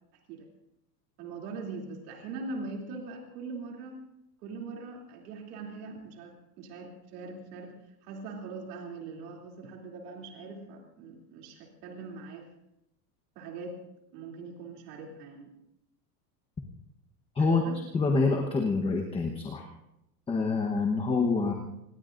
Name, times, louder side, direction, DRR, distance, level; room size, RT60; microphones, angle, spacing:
voice 1, 1.2-4.0 4.4-7.7 8.0-12.5 13.3-13.8 14.1-15.5 17.4-17.8, right 3 dB, 75° right, 0 dB, 3.1 m, -41 dB
voice 2, 17.9-19.6 20.3-21.5, left 4 dB, 10° left, 2 dB, 1.1 m, -26 dB
26.0 x 20.0 x 2.6 m, 0.85 s
supercardioid pair, 155°, 47 cm